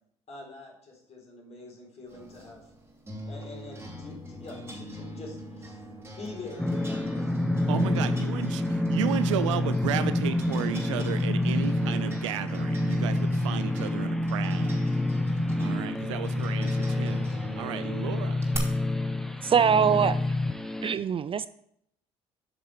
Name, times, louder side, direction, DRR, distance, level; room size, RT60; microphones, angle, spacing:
voice 1, 0.3-2.7 3.3-5.8 6.2-7.5, left 2 dB, 45° left, -2 dB, 4.0 m, -45 dB
sound 1, 2.1-18.6, equal, 15° right, 2.7 m, -43 dB
sound 2, 6.6-20.9, left 1 dB, 5° left, 0.8 m, -28 dB
voice 2, 7.7-14.8 15.6-17.3 17.6-18.4, right 10 dB, 90° right, 12 dB, 0.5 m, -33 dB
voice 3, 19.4-20.2 20.8-21.5, right 7 dB, 35° right, 15 dB, 0.4 m, -22 dB
8.2 x 6.1 x 4.8 m, 0.71 s
hypercardioid pair, 55°, 15 cm